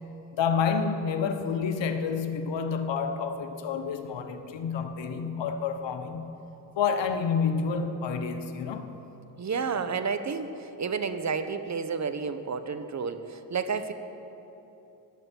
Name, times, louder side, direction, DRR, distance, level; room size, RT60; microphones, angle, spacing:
voice 1, 0.4-6.4 6.8-9.0, left 6 dB, 60° left, 1.1 m, -29 dB
voice 2, 9.4-13.9, right 5 dB, 35° right, 1.0 m, -31 dB
16.0 x 12.0 x 4.6 m
hypercardioid pair, 50°, 50 cm